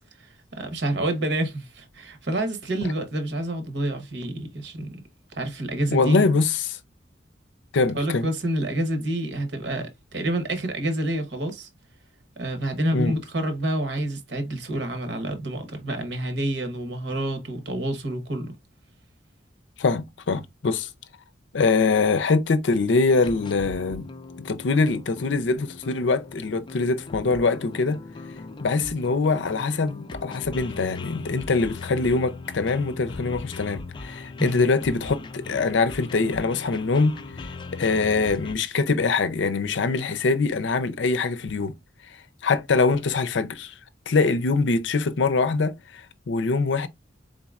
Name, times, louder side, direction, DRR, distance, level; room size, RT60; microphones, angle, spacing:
voice 1, 0.5-5.0 5.3-6.2 7.9-11.7 12.4-18.5 34.4-34.6, right 1 dB, 65° right, 1.1 m, -28 dB
voice 2, 5.9-6.8 7.7-8.3 12.9-13.2 19.8-20.9 21.5-24.1 24.4-28.0 28.6-37.2 37.7-41.7 42.4-43.7 44.1-46.9, left 4 dB, 80° left, 0.5 m, -23 dB
new sss, 23.1-38.5, left 3 dB, 25° left, 0.4 m, -39 dB
4.1 x 3.8 x 2.4 m
head